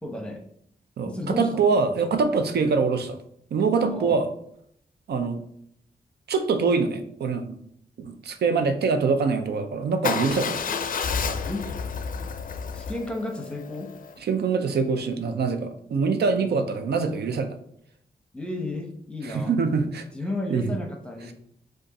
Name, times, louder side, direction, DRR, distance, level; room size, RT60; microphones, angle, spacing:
voice 1, 0.0-0.4 1.1-1.7 3.9-4.2 10.4-10.5 11.5-11.7 12.7-13.9 16.1-16.7 18.3-19.5 20.1-21.3, left 2 dB, 5° left, 2 dB, 0.8 m, -33 dB
voice 2, 1.0-3.2 3.5-4.3 5.1-5.4 6.3-7.6 8.0-10.6 14.2-17.6 19.2-20.1 20.5-20.7, right 4 dB, 85° right, 8 dB, 0.5 m, -24 dB
Motorcycle / Engine starting / Idling, 10.0-14.1, left 5 dB, 55° left, 0.4 m, -30 dB
5.1 x 2.5 x 3.9 m, 0.68 s
wide cardioid pair, 90°, 17 cm